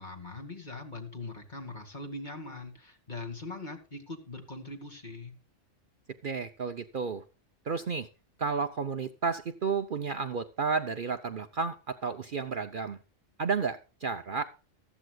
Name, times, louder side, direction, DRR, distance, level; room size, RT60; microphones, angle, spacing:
voice 1, 0.0-5.4, left 2 dB, 40° left, 5 dB, 2.4 m, -41 dB
voice 2, 6.2-7.2 7.7-8.1 8.4-13.0 13.4-14.4, right 5 dB, 50° right, 8 dB, 0.8 m, -32 dB
14.5 x 14.0 x 2.3 m, 0.33 s
omnidirectional pair, 1.3 m